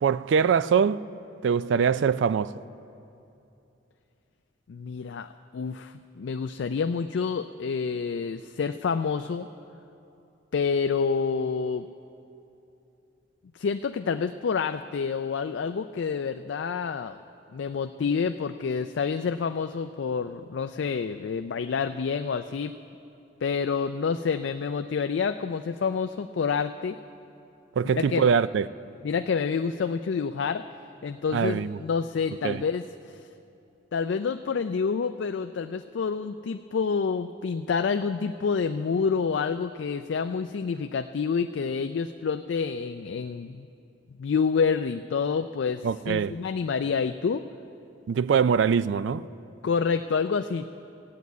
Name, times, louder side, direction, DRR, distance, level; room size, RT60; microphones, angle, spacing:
voice 1, 0.0-1.1 1.4-2.6 27.8-28.7 31.3-31.8 32.4-32.6 45.8-46.3 48.1-49.2, right 6 dB, 65° right, 0.3 m, -23 dB
voice 2, 4.7-9.5 10.5-11.9 13.5-17.2 17.5-22.7 23.4-27.0 27.9-28.3 29.0-30.6 31.0-33.2 33.9-43.7 44.2-47.4 49.6-50.7, left 5 dB, 65° left, 0.4 m, -28 dB
15.0 x 9.3 x 8.3 m
head